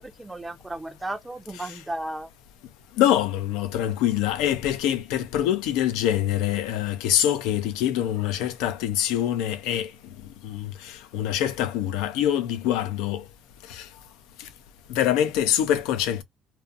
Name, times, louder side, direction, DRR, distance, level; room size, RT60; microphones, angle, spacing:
voice 1, 0.0-2.3, right 1 dB, 10° right, 0.5 m, -34 dB
voice 2, 3.0-9.9 10.4-13.2 13.7-13.9 14.4-14.5 14.9-16.2, left 11 dB, 90° left, 0.5 m, -25 dB
2.5 x 2.5 x 2.4 m
cardioid pair, 100°, 0 cm